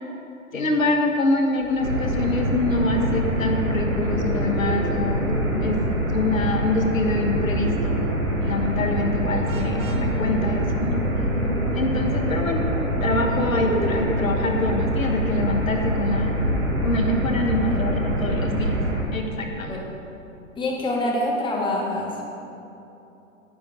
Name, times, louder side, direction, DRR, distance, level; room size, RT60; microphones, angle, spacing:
voice 1, 0.5-5.8 6.1-8.0 8.4-11.0 11.7-12.7 13.0-16.3 16.8-18.8 19.1-19.8, left 2 dB, 80° left, 3 dB, 1.3 m, -25 dB
sound 1, 1.6-16.8, left 3 dB, 45° left, 1.3 m, -40 dB
sound 2, 1.8-19.0, right 1 dB, 90° right, 1.9 m, -25 dB
Vehicle horn car horn honking, 9.5-10.1, right 6 dB, 45° right, 1.2 m, -41 dB
voice 2, 20.5-22.5, left 1 dB, 10° left, -2 dB, 1.5 m, -26 dB
10.5 x 9.9 x 3.7 m, 2.9 s
figure-of-eight pair, 110°, 40 cm